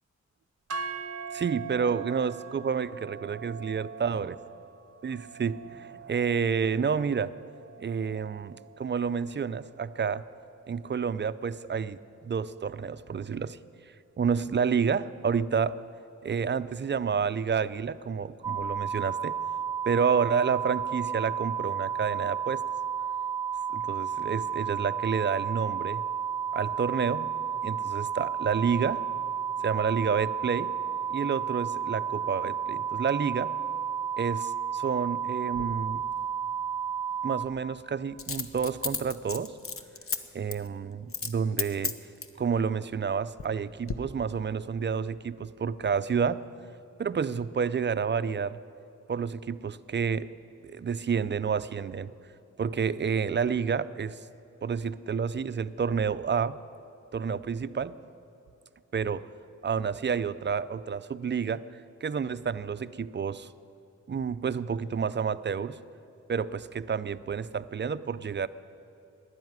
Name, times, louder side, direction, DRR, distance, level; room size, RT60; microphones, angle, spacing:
sound 1, 0.7-8.9, right 5 dB, 55° right, 0.8 m, -42 dB
voice 1, 1.3-4.3 5.0-7.3 7.8-10.2 10.7-13.6 14.2-15.8 16.2-19.3 19.9-22.6 23.7-26.0 26.5-27.3 27.6-29.0 29.6-30.7 31.1-33.5 34.2-36.0 37.2-39.5 40.3-42.0 42.4-46.4 47.0-48.6 49.1-50.3 50.6-52.1 52.6-54.2 54.6-56.6 57.1-58.0 58.9-59.3 59.6-61.6 62.0-63.5 64.1-65.8 66.3-68.5, right 6 dB, 40° right, 15 dB, 0.4 m, -29 dB
sound 2, 18.4-37.5, right 8 dB, 20° right, 1.1 m, -32 dB
Coin (dropping), 35.5-35.7 38.2-40.2 40.5-40.7 41.1-41.3 41.6-42.4 43.0-43.6 43.9-44.0, left 5 dB, 50° left, 0.8 m, -33 dB
12.0 x 10.5 x 9.4 m, 2.8 s
wide cardioid pair, 85°, 29 cm